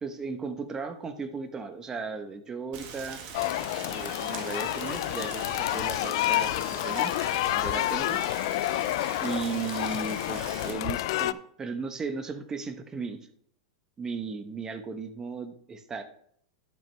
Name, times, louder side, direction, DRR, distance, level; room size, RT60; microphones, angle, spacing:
voice 1, 0.0-3.2 3.9-7.1 7.5-8.2 9.2-13.2 14.0-16.0, right 4 dB, 20° right, 8 dB, 1.1 m, -36 dB
Rain, 2.7-10.7, right 6 dB, 45° right, 1.7 m, -42 dB
sound 1, 3.3-11.3, left 16 dB, 60° left, 0.4 m, -29 dB
12.0 x 6.0 x 3.4 m, 0.66 s
hypercardioid pair, 110°, 3 cm